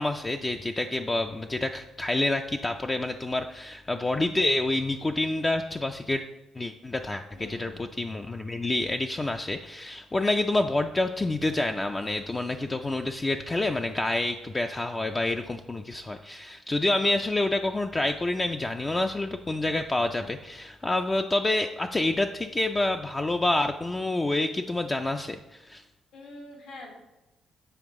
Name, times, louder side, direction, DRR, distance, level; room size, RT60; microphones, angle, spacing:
voice 1, 0.0-6.2 6.6-25.8, left 2 dB, 20° left, 5 dB, 0.3 m, -28 dB
voice 2, 7.3-8.0 26.1-26.9, left 1 dB, 75° left, -1 dB, 1.6 m, -45 dB
7.9 x 4.5 x 3.6 m, 1.0 s
cardioid pair, 90°, 0 cm